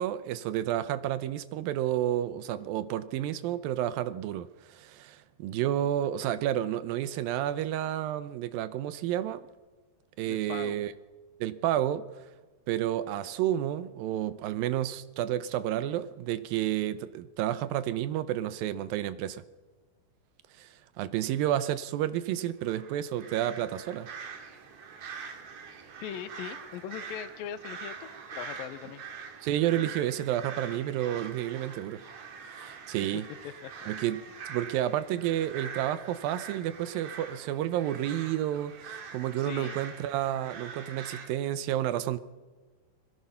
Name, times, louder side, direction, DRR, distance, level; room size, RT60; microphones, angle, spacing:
voice 1, 0.0-9.4 10.2-10.9 11.4-12.1 12.7-19.4 20.6-20.7 21.0-24.1 29.4-32.0 32.6-33.3 33.9-34.2 34.5-42.2, right 12 dB, 85° right, 14 dB, 2.6 m, -30 dB
voice 2, 10.2-10.8 26.0-29.0 33.1-33.2 33.6-33.7 39.4-39.8, left 10 dB, 85° left, 12 dB, 2.7 m, -40 dB
sound 1, 22.6-41.3, right 6 dB, 60° right, 3.1 m, -44 dB
29.5 x 21.5 x 5.7 m, 1.3 s
omnidirectional pair, 4.0 m